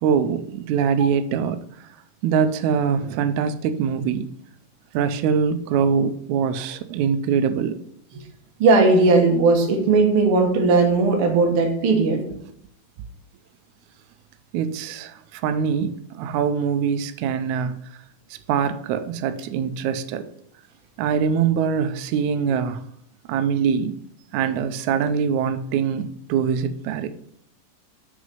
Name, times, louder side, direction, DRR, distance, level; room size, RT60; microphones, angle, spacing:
voice 1, 0.0-1.6 2.2-4.3 4.9-7.8 14.5-17.8 18.5-20.3 21.0-22.8 23.3-23.9 24.3-27.1, right 7 dB, 90° right, 1.7 m, -23 dB
voice 2, 8.6-12.2, right 3 dB, 55° right, 1.6 m, -17 dB
6.3 x 6.1 x 5.4 m
omnidirectional pair, 4.1 m